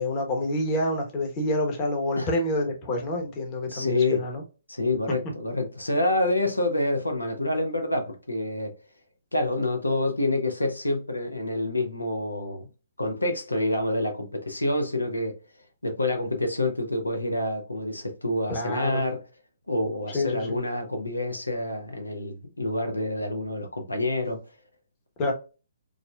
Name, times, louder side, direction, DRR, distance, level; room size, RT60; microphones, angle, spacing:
voice 1, 0.0-4.4 18.5-19.0 20.1-20.6 25.2-25.3, left 1 dB, 30° left, 1.0 m, -27 dB
voice 2, 3.7-4.2 4.7-8.7 9.3-12.7 13.0-15.4 15.8-19.2 19.7-24.4, left 1 dB, 90° left, 0.6 m, -27 dB
4.9 x 2.1 x 2.3 m
figure-of-eight pair, 130°, 0 cm